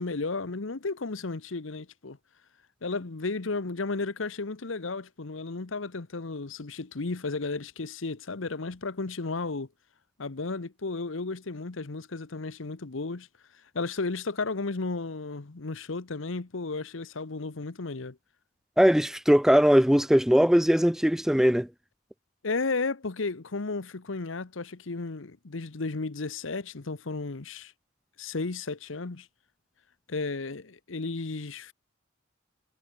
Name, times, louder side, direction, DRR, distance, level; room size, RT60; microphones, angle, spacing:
voice 1, 0.0-2.2 2.8-9.7 10.2-13.3 13.7-18.2 22.4-27.7 28.2-29.3 30.1-31.7, left 3 dB, 75° left, 1.0 m, -33 dB
voice 2, 18.8-21.7, equal, ahead, 0.5 m, -20 dB
head